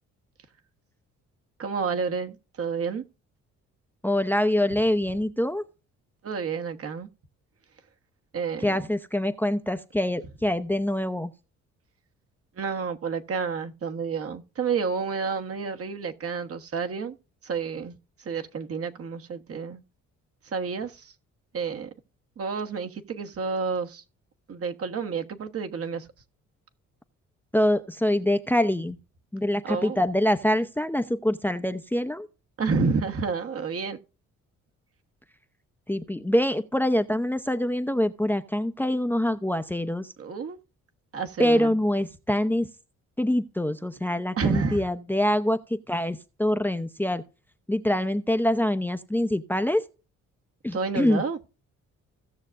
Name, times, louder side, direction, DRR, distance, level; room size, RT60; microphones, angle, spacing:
voice 1, 1.6-3.0 6.2-7.1 8.3-8.8 12.6-17.2 17.4-17.9 18.2-19.8 20.4-21.1 21.5-21.9 22.4-24.0 24.5-26.1 29.6-30.0 32.6-34.0 40.2-40.6 41.1-41.8 44.4-44.8 50.7-51.4, right 5 dB, 50° right, 1.3 m, -30 dB
voice 2, 4.0-5.6 8.6-11.3 27.5-29.0 29.3-32.3 35.9-40.1 41.4-42.7 43.2-47.2 47.7-49.8 50.6-51.2, left 1 dB, 5° left, 0.7 m, -25 dB
17.0 x 6.5 x 2.5 m
cardioid pair, 90°, 30 cm